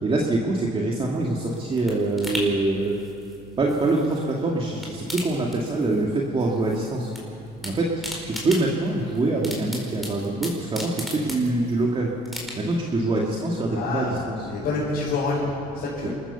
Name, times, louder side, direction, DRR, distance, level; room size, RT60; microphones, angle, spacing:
voice 1, 0.0-3.0 3.6-7.1 7.6-12.1 12.6-14.5 16.0-16.1, right 2 dB, 30° right, -2 dB, 2.2 m, -24 dB
sound 1, 1.1-4.3 4.6-6.1 6.4-7.2 7.5-11.8 12.2-12.9 13.3-13.4, left 1 dB, ahead, 4.8 m, -37 dB
voice 2, 13.7-14.2 14.5-16.1, left 3 dB, 70° left, -8 dB, 5.7 m, -27 dB
27.0 x 14.5 x 7.0 m, 2.7 s
cardioid pair, 110°, 17 cm